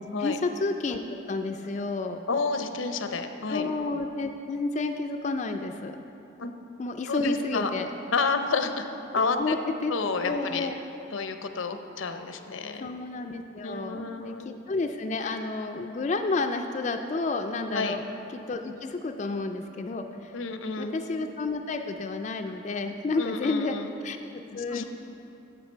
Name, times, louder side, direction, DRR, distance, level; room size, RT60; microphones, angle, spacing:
voice 1, 0.0-2.2 3.5-6.0 6.8-7.9 9.4-9.6 9.8-9.9 10.2-10.8 12.8-18.0 18.5-20.4 20.8-23.8 24.0-24.8, left 3 dB, 35° left, 5 dB, 0.3 m, -31 dB
voice 2, 2.3-3.7 6.4-6.5 7.1-7.7 8.1-8.8 9.1-9.5 9.9-10.7 11.1-12.9 13.6-14.5 17.7-18.0 20.3-21.0 23.2-23.9 24.5-24.8, left 4 dB, 90° left, 7 dB, 0.6 m, -30 dB
11.5 x 7.9 x 4.4 m, 2.9 s
head